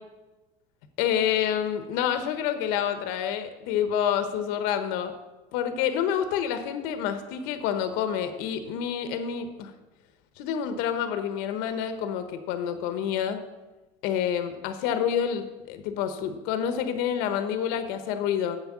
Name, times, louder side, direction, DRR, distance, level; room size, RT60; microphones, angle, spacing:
voice 1, 1.0-5.1 5.5-9.7 10.4-13.4 14.0-18.6, left 9 dB, 65° left, 9 dB, 1.1 m, -28 dB
8.3 x 7.3 x 7.4 m, 1.1 s
cardioid pair, 140°, 16 cm